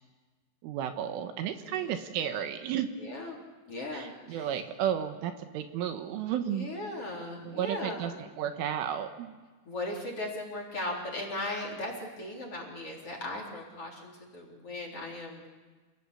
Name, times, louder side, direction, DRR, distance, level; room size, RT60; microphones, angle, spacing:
voice 1, 0.6-2.9 3.9-6.7 7.4-9.4, right 9 dB, 75° right, 7 dB, 3.6 m, -33 dB
voice 2, 1.6-2.0 3.0-3.4 3.7-4.6 6.5-8.3 9.7-15.4, left 1 dB, 30° left, 1 dB, 4.2 m, -38 dB
28.5 x 19.0 x 8.4 m, 1.3 s
omnidirectional pair, 5.9 m